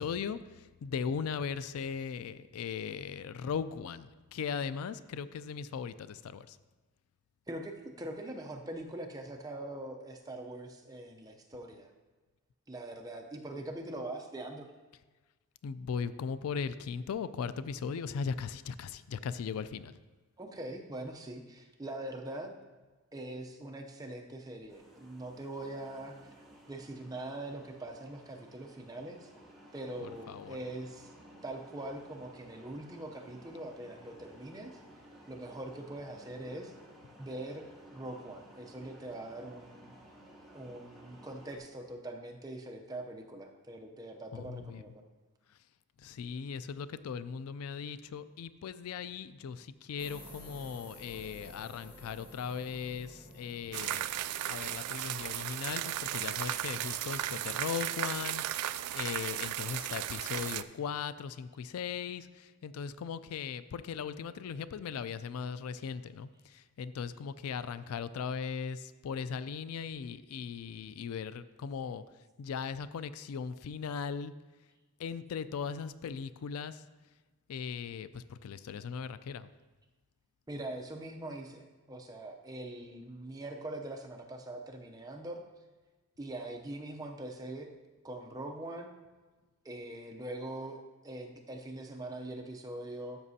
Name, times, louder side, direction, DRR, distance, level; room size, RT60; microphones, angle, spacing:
voice 1, 0.0-6.6 15.6-19.9 30.0-30.6 44.3-44.8 45.5-45.6 46.0-54.1 54.5-72.0 72.4-74.3 75.0-76.8 77.5-79.5, left 6 dB, 75° left, 14 dB, 0.3 m, -38 dB
voice 2, 7.5-11.9 12.7-14.7 20.4-22.6 23.1-26.3 26.7-29.3 29.7-31.1 31.4-34.8 35.3-36.7 37.2-39.9 40.5-45.0 80.5-85.4 86.2-87.7 88.0-88.9 89.6-90.8 91.0-93.2, right 1 dB, 15° right, 2 dB, 0.6 m, -42 dB
sound 1, 24.7-41.6, equal, ahead, 1.5 m, -56 dB
sound 2, 50.0-56.1, left 1 dB, 25° left, 1.2 m, -52 dB
sound 3, 53.7-60.6, right 13 dB, 90° right, 0.3 m, -35 dB
12.5 x 5.9 x 2.8 m, 1.2 s
head